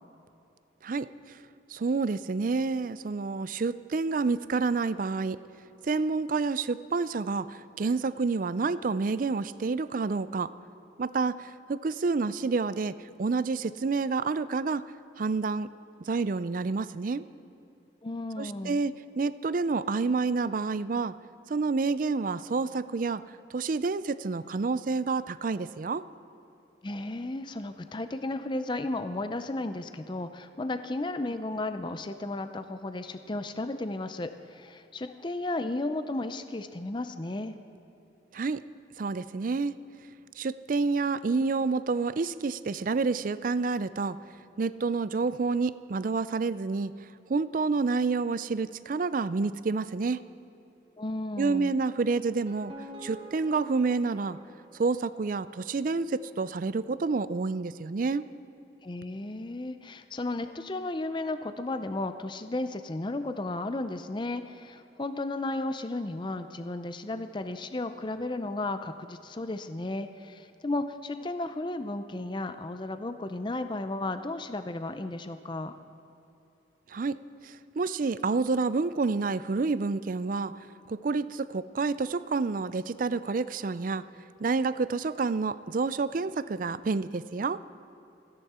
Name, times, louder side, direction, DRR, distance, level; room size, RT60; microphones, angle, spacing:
voice 1, 0.8-1.4 1.7-5.4 5.8-10.5 11.0-14.8 15.2-15.7 16.0-17.2 18.4-21.2 21.5-23.2 23.5-26.0 38.3-38.6 39.0-39.7 40.4-44.2 44.6-46.9 47.3-50.2 51.4-52.7 53.0-54.4 54.7-58.2 76.9-77.2 77.4-80.5 80.9-84.0 84.4-87.6, right 4 dB, 45° right, 16 dB, 0.4 m, -29 dB
voice 2, 18.0-18.8 26.8-37.5 51.0-51.8 58.8-75.7, left 2 dB, 25° left, 9 dB, 0.5 m, -34 dB
sound 1, 52.2-55.4, equal, 25° right, 2.6 m, -47 dB
27.5 x 10.5 x 4.3 m, 3.0 s
head